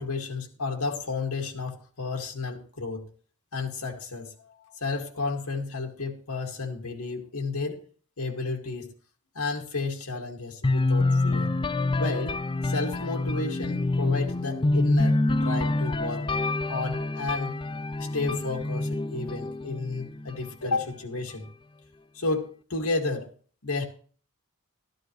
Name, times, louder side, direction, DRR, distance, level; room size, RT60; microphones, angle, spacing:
voice 1, 0.0-3.0 3.5-7.8 8.2-8.9 9.4-11.5 12.0-12.4 12.6-16.3 16.7-17.5 18.0-21.5 22.1-23.3 23.6-23.8, left 3 dB, 90° left, 2 dB, 2.2 m, -32 dB
sound 1, 10.6-20.5, left 2 dB, 20° left, 0.4 m, -26 dB
13.5 x 11.5 x 3.1 m, 0.42 s
head